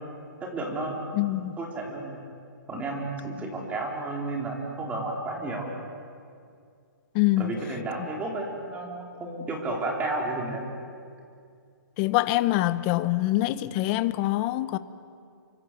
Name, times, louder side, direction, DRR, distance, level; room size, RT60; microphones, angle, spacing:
voice 1, 0.4-1.1 1.6-2.2 2.7-5.7 7.4-10.7, right 2 dB, 10° right, 4.2 m, -32 dB
voice 2, 1.1-1.6 7.1-7.5 12.0-14.8, left 16 dB, 30° left, 0.9 m, -24 dB
29.0 x 24.5 x 7.7 m
hypercardioid pair, 155°, 11 cm